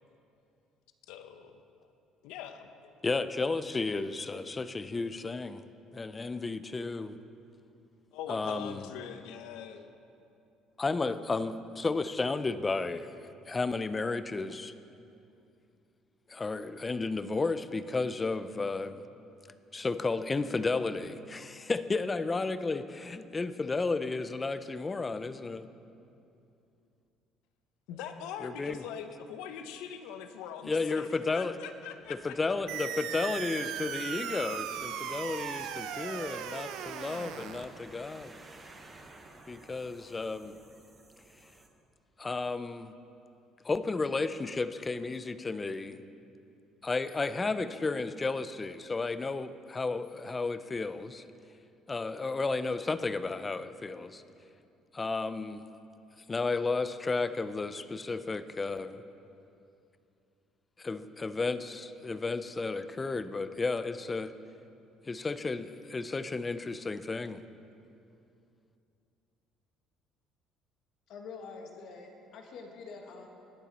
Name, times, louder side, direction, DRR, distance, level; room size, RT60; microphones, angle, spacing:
voice 1, 1.1-1.6 2.2-3.0 8.1-9.9 27.9-32.5, left 8 dB, 90° left, 8 dB, 0.7 m, -42 dB
voice 2, 3.0-5.6 5.9-7.2 8.3-8.9 10.8-13.1 13.5-14.7 16.3-19.1 19.7-25.7 28.4-28.8 30.7-31.6 32.1-38.4 39.5-40.6 42.2-42.9 43.6-46.0 46.8-51.2 51.9-54.2 54.9-55.6 56.3-59.0 60.8-64.3 65.1-67.4, left 3 dB, 15° left, 13 dB, 0.3 m, -33 dB
sound 1, 32.0-41.7, right 2 dB, 15° right, 0.9 m, -55 dB
sound 2, 32.7-37.7, right 9 dB, 70° right, 0.6 m, -38 dB
voice 3, 71.1-73.3, left 4 dB, 50° left, 3 dB, 1.3 m, -46 dB
20.0 x 7.2 x 4.0 m, 2.7 s
cardioid pair, 175°, 0 cm